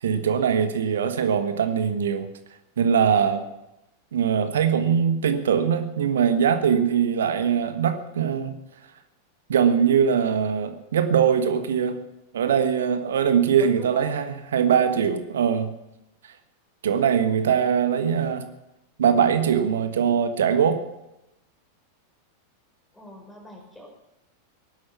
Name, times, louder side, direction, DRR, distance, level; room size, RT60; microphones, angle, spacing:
voice 1, 0.0-2.3 2.8-3.5 4.1-8.5 9.5-12.0 12.3-15.7 16.8-18.4 19.0-20.8, right 7 dB, 65° right, 9 dB, 1.4 m, -22 dB
voice 2, 13.6-14.1 22.9-23.9, left 1 dB, 5° left, 0 dB, 5.6 m, -42 dB
19.0 x 11.5 x 5.9 m, 0.90 s
figure-of-eight pair, 90°, 0 cm